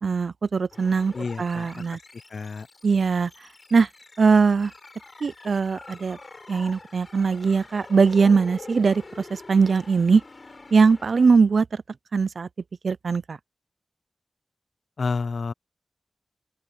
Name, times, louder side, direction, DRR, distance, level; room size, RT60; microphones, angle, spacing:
voice 1, 0.0-2.0 2.8-3.3 3.7-3.9 4.2-4.7 5.2-6.2 6.5-10.2 10.7-11.8 12.1-12.5 12.8-13.4, right 5 dB, 85° right, 0.4 m, -21 dB
sound 1, 0.7-11.4, left 3 dB, 50° left, 5.3 m, -46 dB
voice 2, 1.1-1.8 2.3-2.7 15.0-15.5, left 4 dB, 85° left, 0.5 m, -29 dB
open air
wide cardioid pair, 70°, 0 cm